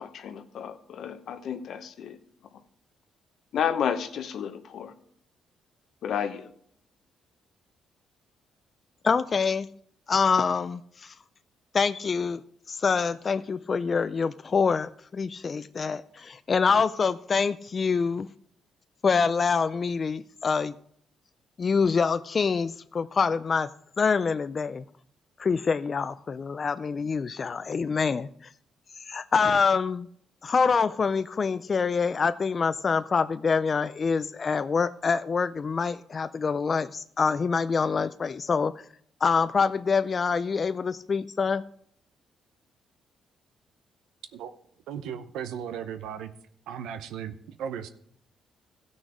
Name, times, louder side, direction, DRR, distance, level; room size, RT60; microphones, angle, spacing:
voice 1, 0.0-2.2 3.5-4.9 6.0-6.5, left 8 dB, 65° left, 10 dB, 0.9 m, -31 dB
voice 2, 9.0-9.7 10.1-11.1 11.7-12.4 12.7-18.3 19.0-20.7 21.6-23.7 24.0-24.8 25.4-28.3 29.0-30.1 30.4-38.7 39.2-41.6, left 5 dB, 40° left, 12 dB, 0.3 m, -25 dB
voice 3, 44.9-46.3 46.7-47.9, right 8 dB, 85° right, 9 dB, 0.7 m, -36 dB
14.5 x 6.3 x 4.9 m, 0.65 s
cardioid pair, 90°, 0 cm